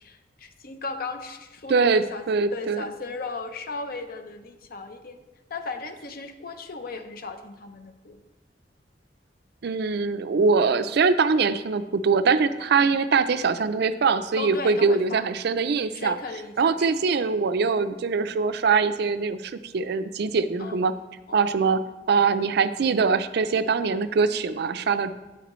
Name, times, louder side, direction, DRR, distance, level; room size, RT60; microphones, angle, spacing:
voice 1, 0.0-2.2 2.5-5.2 5.5-8.2 12.8-13.0 14.4-15.3 15.9-17.1 20.6-20.8 21.3-21.5, left 3 dB, 55° left, 8 dB, 0.7 m, -36 dB
voice 2, 1.7-2.8 9.6-16.2 16.6-20.9 21.3-21.8 22.1-25.1, right 5 dB, 65° right, 12 dB, 0.4 m, -23 dB
10.0 x 8.8 x 3.1 m, 1.1 s
head